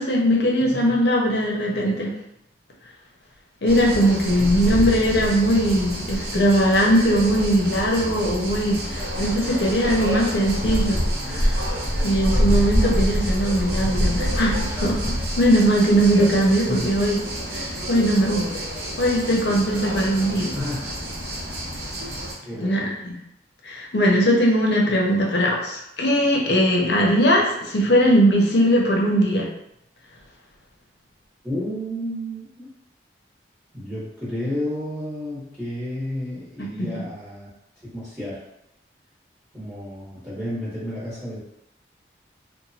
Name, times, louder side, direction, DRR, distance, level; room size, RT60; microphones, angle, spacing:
voice 1, 0.0-2.1 3.6-11.0 11.3-11.6 12.0-15.0 15.4-17.2 17.5-18.5 19.0-20.5 22.6-23.2 23.6-29.5 36.6-36.7, equal, 65° left, -2 dB, 0.6 m, -20 dB
voice 2, 0.6-1.1 4.3-5.0 16.7-16.9 20.5-21.1 22.4-22.9 31.4-32.7 33.7-37.5 37.9-38.4 39.5-41.4, left 1 dB, 15° right, -11 dB, 0.9 m, -31 dB
sound 1, 3.7-22.3, equal, 55° right, 0.6 m, -27 dB
3.0 x 2.1 x 2.7 m, 0.82 s
head